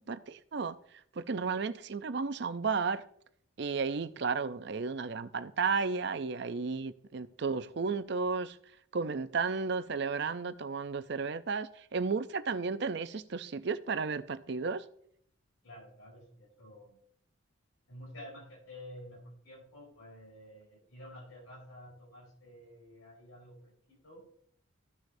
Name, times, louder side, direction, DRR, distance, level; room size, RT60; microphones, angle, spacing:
voice 1, 0.1-0.8 1.2-3.0 3.6-8.6 8.9-14.8, right 5 dB, 55° right, 0.5 m, -33 dB
voice 2, 15.6-17.0 17.9-24.2, left 1 dB, 90° left, 4.0 m, -50 dB
14.5 x 6.2 x 2.6 m
head